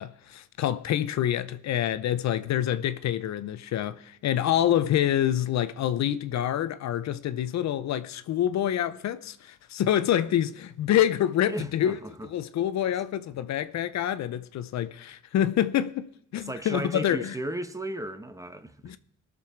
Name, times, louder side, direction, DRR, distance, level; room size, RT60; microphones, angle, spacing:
voice 1, 0.0-12.0 12.3-17.3 18.8-19.0, left 11 dB, 65° left, 0.6 m, -27 dB
voice 2, 11.5-12.3 16.3-18.9, right 1 dB, 10° right, 1.0 m, -35 dB
19.0 x 6.8 x 4.5 m
cardioid pair, 90°, 30 cm